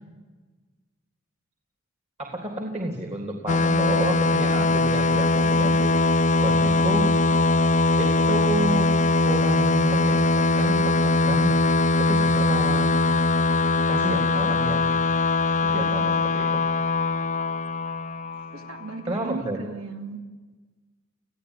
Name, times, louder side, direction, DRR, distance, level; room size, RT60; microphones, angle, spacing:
voice 1, 2.2-6.0 6.4-7.2 8.0-8.9 9.2-11.6 12.0-12.9 13.9-14.9 15.6-16.6 19.1-19.6, right 1 dB, 30° right, 2 dB, 3.4 m, -30 dB
sound 1, 3.5-18.9, left 2 dB, 35° left, 0.7 m, -21 dB
voice 2, 18.5-20.2, right 3 dB, 90° right, 5 dB, 3.1 m, -36 dB
28.5 x 16.5 x 10.0 m, 1.3 s
head